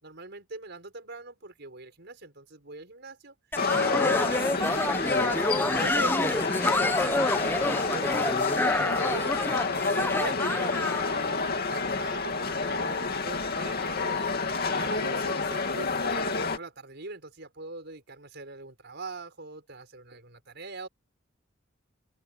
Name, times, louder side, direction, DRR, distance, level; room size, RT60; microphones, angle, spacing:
voice 1, 0.0-3.3 3.7-8.2 8.6-9.3 9.7-10.6 11.0-20.9, right 2 dB, 55° right, 5.7 m, -42 dB
sound 1, 3.5-16.6, left 4 dB, 50° left, 2.5 m, -29 dB
sound 2, 3.5-11.1, left 2 dB, 10° left, 1.0 m, -28 dB
open air
head